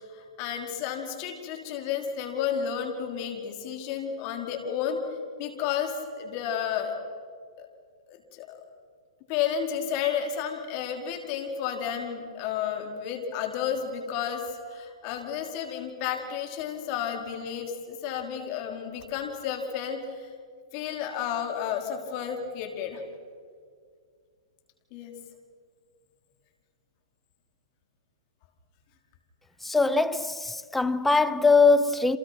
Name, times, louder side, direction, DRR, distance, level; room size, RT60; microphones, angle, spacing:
voice 1, 0.1-5.0 5.4-6.9 7.6-7.7 8.1-8.6 9.3-14.4 14.7-20.3 20.7-23.0 24.9-25.2, left 8 dB, 40° left, 4.5 m, -32 dB
voice 2, 29.6-32.2, left 4 dB, 5° left, 0.8 m, -22 dB
29.5 x 28.0 x 6.1 m
hypercardioid pair, 140°, 3 cm